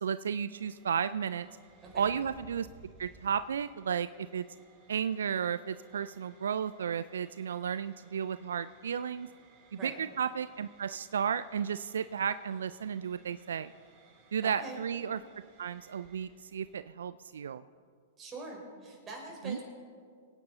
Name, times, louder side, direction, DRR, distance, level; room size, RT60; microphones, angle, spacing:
voice 1, 0.0-1.5 1.9-2.7 3.0-4.5 4.9-9.3 9.8-13.7 14.3-15.2 15.6-17.6 19.4-19.6, right 7 dB, 80° right, 14 dB, 0.3 m, -33 dB
sound 1, 0.5-16.8, right 4 dB, 45° right, 2.8 m, -61 dB
voice 2, 14.4-14.8 18.2-19.6, right 3 dB, 25° right, 0 dB, 4.4 m, -43 dB
24.0 x 9.7 x 4.0 m, 2.2 s
hypercardioid pair, 115°, 0 cm